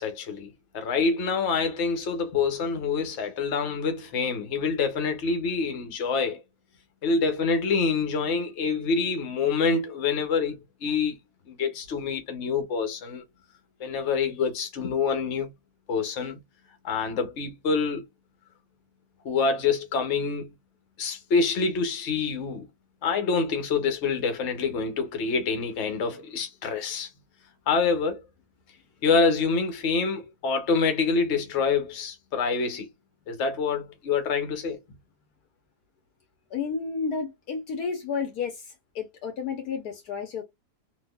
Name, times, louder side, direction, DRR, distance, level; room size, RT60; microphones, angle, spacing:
voice 1, 0.0-6.4 7.0-11.2 11.5-13.2 13.8-15.5 15.9-16.4 16.8-18.0 19.2-20.5 21.0-22.7 23.0-27.1 27.7-28.2 29.0-32.9 33.3-34.8, left 5 dB, 50° left, 1.1 m, -26 dB
voice 2, 36.5-40.4, left 5 dB, 70° left, 1.3 m, -31 dB
4.0 x 2.8 x 2.3 m
omnidirectional pair, 1.7 m